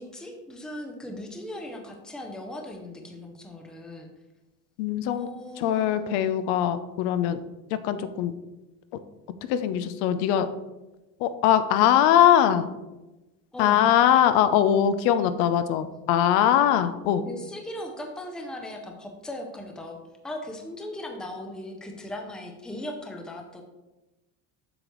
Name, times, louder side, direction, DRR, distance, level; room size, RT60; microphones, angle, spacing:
voice 1, 0.0-4.1 5.1-6.2 13.5-13.9 17.3-20.0 20.2-23.6, left 1 dB, ahead, 3 dB, 0.5 m, -38 dB
voice 2, 4.8-5.3 5.6-7.4 7.7-8.3 9.5-10.5 11.2-12.7 13.6-17.2, left 10 dB, 80° left, 11 dB, 0.6 m, -21 dB
7.8 x 6.8 x 3.0 m, 1.0 s
cardioid pair, 175°, 35 cm